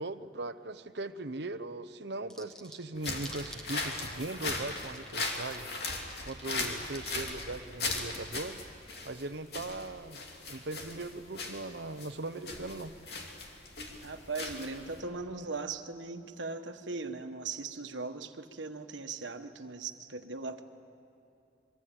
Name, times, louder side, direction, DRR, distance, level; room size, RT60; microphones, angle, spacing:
voice 1, 0.0-5.7 6.2-8.6 9.0-10.2 10.5-12.9, right 2 dB, 65° right, 11 dB, 0.9 m, -39 dB
sound 1, 2.3-7.9, right 1 dB, 5° left, 1.3 m, -51 dB
Walking on plastic, 3.0-15.0, left 3 dB, 60° left, 3.0 m, -38 dB
voice 2, 14.0-20.6, right 4 dB, 90° right, 7 dB, 1.4 m, -39 dB
26.5 x 23.0 x 8.8 m, 2.6 s
head